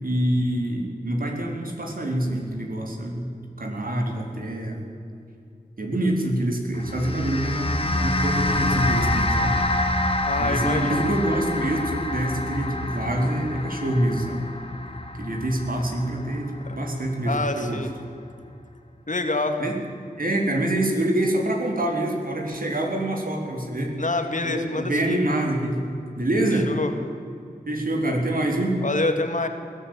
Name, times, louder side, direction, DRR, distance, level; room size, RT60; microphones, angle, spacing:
voice 1, 0.0-3.3 3.6-4.8 5.8-9.6 10.4-14.5 15.2-17.8 19.6-19.8 20.2-24.0 24.4-25.8 26.2-26.7 27.7-28.8, right 1 dB, 60° right, 2 dB, 4.1 m, -25 dB
sound 1, 6.7-17.3, left 1 dB, 35° left, 2.0 m, -27 dB
voice 2, 10.3-11.1 16.6-16.8 17.3-17.9 19.1-19.6 24.0-25.2 26.7-26.9 28.8-29.5, left 2 dB, 50° left, 6 dB, 2.3 m, -26 dB
21.0 x 13.5 x 9.3 m, 2.5 s
wide cardioid pair, 55°, 17 cm